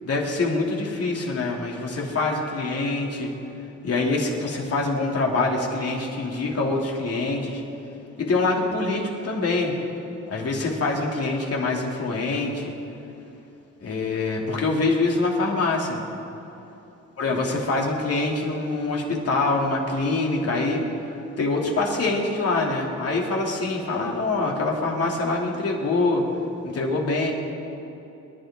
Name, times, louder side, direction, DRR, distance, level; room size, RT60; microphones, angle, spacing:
voice 1, 0.0-3.3 3.8-7.6 8.2-9.8 10.3-12.7 13.8-16.0 17.2-20.8 21.4-26.2 26.6-27.3, left 3 dB, 50° left, -1 dB, 3.0 m, -25 dB
25.5 x 11.5 x 3.8 m, 3.0 s
cardioid pair, 90°, 30 cm